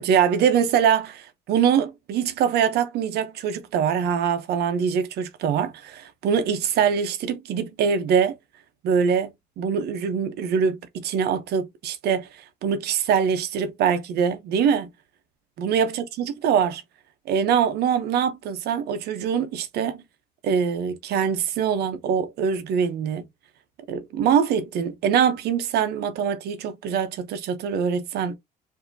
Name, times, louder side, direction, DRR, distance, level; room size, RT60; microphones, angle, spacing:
voice 1, 0.0-8.3 8.8-12.3 12.6-14.9 15.6-16.8 17.3-20.0 20.4-23.2 23.9-28.4, right 7 dB, 75° right, 0.8 m, -23 dB
4.9 x 2.8 x 2.7 m
cardioid pair, 110°, 17 cm